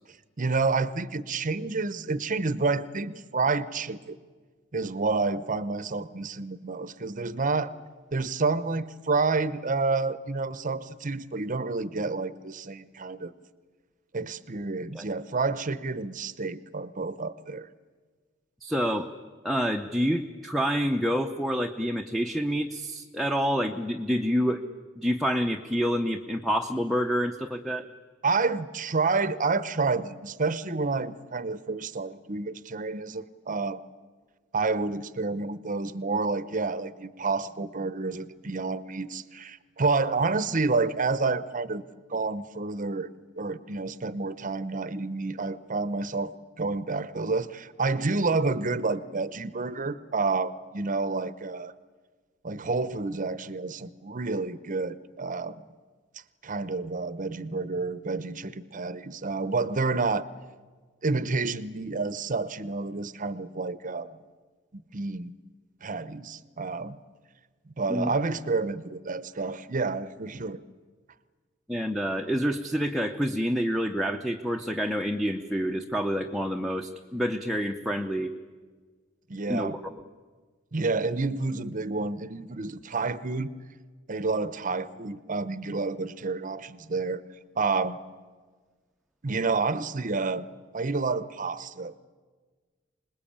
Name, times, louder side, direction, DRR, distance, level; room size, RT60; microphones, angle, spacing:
voice 1, 0.4-4.2 4.7-7.7 8.1-13.3 14.1-17.7 28.2-33.8 34.5-41.8 42.1-43.1 43.4-51.7 52.4-55.6 56.4-60.3 61.0-64.1 64.7-65.3 65.8-67.0 67.8-70.6 79.3-79.8 80.7-83.5 84.1-87.2 87.6-88.0 89.2-90.5 90.7-92.0, right 3 dB, 40° right, 16 dB, 0.8 m, -29 dB
voice 2, 18.6-19.1 19.4-24.6 25.0-27.9 67.9-68.1 71.7-78.3 79.5-79.7, equal, ahead, 5 dB, 0.8 m, -27 dB
26.0 x 20.5 x 8.7 m, 1.5 s
head